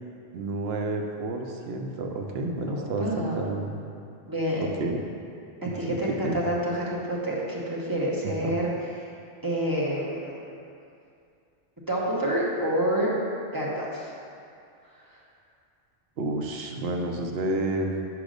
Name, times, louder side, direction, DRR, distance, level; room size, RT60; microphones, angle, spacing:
voice 1, 0.3-3.1 3.4-3.8 4.8-5.0 5.9-6.0 6.2-6.4 8.4-8.5 16.2-17.9, right 2 dB, 65° right, 2 dB, 0.8 m, -30 dB
voice 2, 2.7-3.5 4.3-4.6 5.6-8.7 9.4-10.5 11.9-13.1 13.5-14.1 15.1-15.2, right 1 dB, 20° right, -5 dB, 0.8 m, -28 dB
5.2 x 4.8 x 5.1 m, 2.5 s
omnidirectional pair, 1.2 m